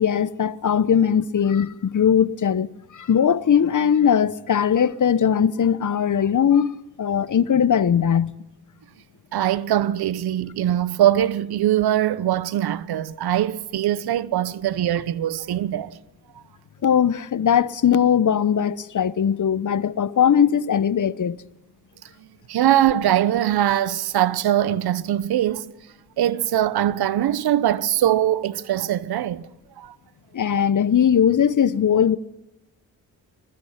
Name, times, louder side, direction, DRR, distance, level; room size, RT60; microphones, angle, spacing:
voice 1, 0.0-6.7 7.0-8.3 16.8-21.4 30.3-32.2, left 8 dB, 50° left, 1.0 m, -19 dB
voice 2, 9.3-16.0 22.5-25.7 26.2-29.5 29.8-29.9, right 12 dB, 75° right, 0.9 m, -22 dB
22.0 x 21.0 x 5.9 m
supercardioid pair, 40°, 38 cm